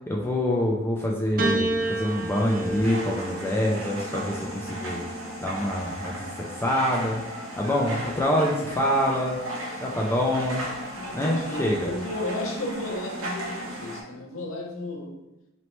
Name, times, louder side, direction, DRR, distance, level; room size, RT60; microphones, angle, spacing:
voice 1, 0.1-5.0 5.4-7.2 7.6-9.4 9.8-10.7 11.1-11.9, left 1 dB, 10° left, -2 dB, 0.3 m, -26 dB
Piano, 1.4-5.9 6.9-7.6, right 2 dB, 45° right, 0.6 m, -32 dB
sound 1, 1.6-14.0, equal, 80° right, 0.9 m, -36 dB
sound 2, 6.5-8.4 8.7-9.7 10.6-11.4 11.7-12.5 12.8-12.9 13.1-13.2 13.5-14.5, equal, 60° right, 1.4 m, -47 dB
voice 2, 11.0-15.2, left 1 dB, 70° left, 2 dB, 0.7 m, -33 dB
4.0 x 3.1 x 3.0 m, 0.96 s
head